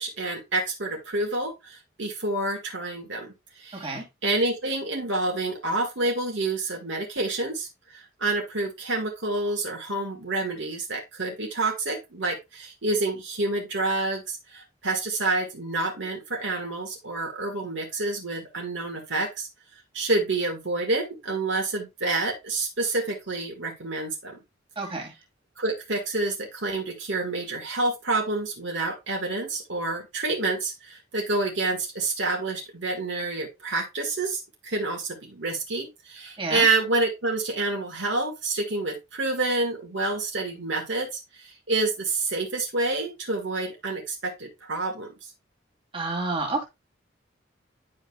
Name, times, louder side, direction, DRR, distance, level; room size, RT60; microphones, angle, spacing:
voice 1, 0.0-19.5 19.9-24.4 25.6-45.3, right 2 dB, 70° right, 1 dB, 1.8 m, -28 dB
voice 2, 3.7-4.0 24.8-25.1 36.4-36.7 45.9-46.6, right 3 dB, 30° right, 0 dB, 2.1 m, -29 dB
10.5 x 5.0 x 2.3 m, 0.22 s
head